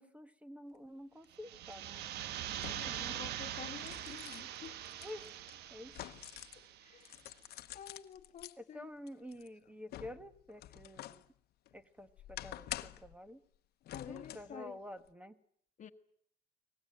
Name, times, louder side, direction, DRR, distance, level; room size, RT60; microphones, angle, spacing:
voice 1, 0.0-2.1 2.6-3.1 5.0-5.4 5.7-5.9 8.6-11.2 11.7-13.4 14.1-15.4, left 1 dB, 5° right, 1.5 m, -49 dB
sound 1, 1.2-1.3 2.6-3.1 3.5-6.7 7.0-8.5 9.1-11.3 11.7-13.1 13.8-14.6 15.0-15.1, left 14 dB, 70° left, 1.0 m, -48 dB
sound 2, 1.3-7.0, right 11 dB, 75° right, 1.2 m, -43 dB
voice 2, 2.8-5.0 6.5-7.2 7.7-8.9 13.9-14.8 15.8-15.9, left 8 dB, 45° left, 1.4 m, -50 dB
23.5 x 19.5 x 9.1 m
cardioid pair, 110°, 17 cm